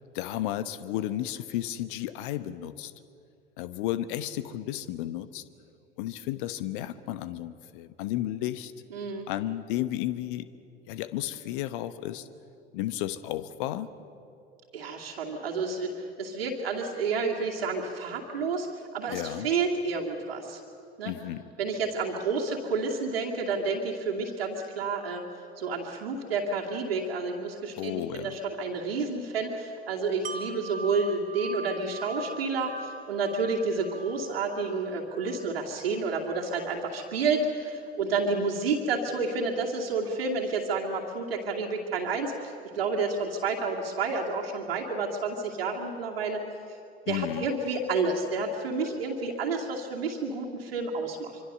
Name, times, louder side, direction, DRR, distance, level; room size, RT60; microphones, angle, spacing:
voice 1, 0.1-2.9 3.6-5.4 6.0-8.7 9.3-10.5 10.9-12.3 12.7-13.9 19.1-19.5 21.0-21.4 27.8-28.4 47.1-47.5, left 13 dB, 55° left, 14 dB, 1.2 m, -33 dB
voice 2, 8.9-9.3 14.7-20.6 21.0-21.1 21.6-25.2 25.6-46.4 47.1-51.3, right 4 dB, 70° right, -1 dB, 2.4 m, -30 dB
Wind chime, 30.2-36.0 36.4-36.6, right 3 dB, 25° right, 1.7 m, -42 dB
25.5 x 25.0 x 6.7 m, 2.6 s
figure-of-eight pair, 70°, 30 cm